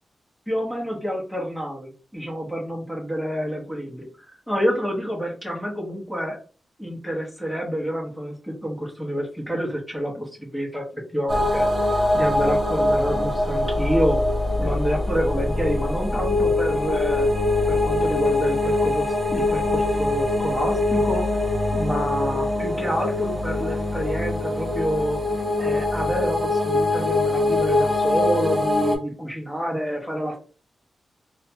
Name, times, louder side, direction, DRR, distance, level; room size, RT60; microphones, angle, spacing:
voice 1, 0.5-6.4 6.8-11.7 12.1-14.2 14.6-17.3 17.7-21.2 21.7-25.2 25.6-30.4, equal, 5° left, -1 dB, 0.9 m, -28 dB
sound 1, 11.3-29.0, left 2 dB, 15° right, 0.5 m, -23 dB
2.7 x 2.2 x 2.7 m, 0.37 s
wide cardioid pair, 130°, 0 cm